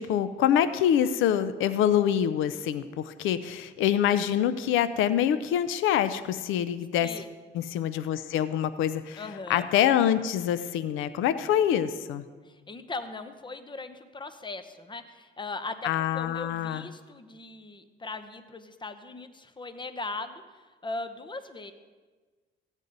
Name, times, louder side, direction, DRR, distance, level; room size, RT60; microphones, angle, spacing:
voice 1, 0.0-7.1 7.5-9.2 9.5-12.2 15.8-16.8, left 10 dB, 90° left, 13 dB, 0.5 m, -25 dB
voice 2, 9.2-9.7 12.4-21.7, left 3 dB, 25° left, 10 dB, 0.9 m, -39 dB
15.0 x 9.0 x 4.0 m, 1.4 s
cardioid pair, 90°, 20 cm